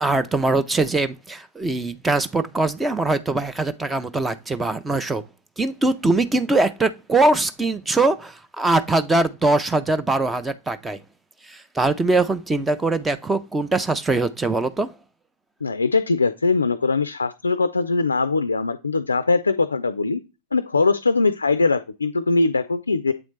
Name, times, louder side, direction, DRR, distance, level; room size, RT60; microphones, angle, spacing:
voice 1, 0.0-5.2 5.6-11.0 11.4-14.9, right 2 dB, 10° right, 0.4 m, -22 dB
voice 2, 15.6-20.2 20.5-23.1, left 3 dB, 75° left, 0.3 m, -21 dB
7.9 x 4.1 x 3.2 m
figure-of-eight pair, 90°, 0 cm